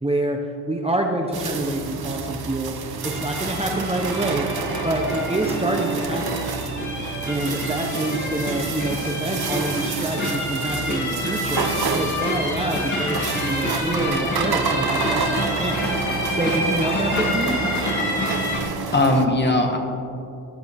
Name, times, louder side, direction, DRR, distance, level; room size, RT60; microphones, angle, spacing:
voice 1, 0.0-6.5 7.2-15.9 16.3-17.7, right 1 dB, 15° right, 1 dB, 0.9 m, -27 dB
sound 1, 1.3-19.3, right 5 dB, 70° right, 1.0 m, -29 dB
sound 2, 3.0-18.6, left 1 dB, 45° left, 2.9 m, -28 dB
voice 2, 18.5-19.8, left 2 dB, 25° left, 2 dB, 1.5 m, -20 dB
20.0 x 11.5 x 3.6 m, 2.6 s
wide cardioid pair, 145°, 39 cm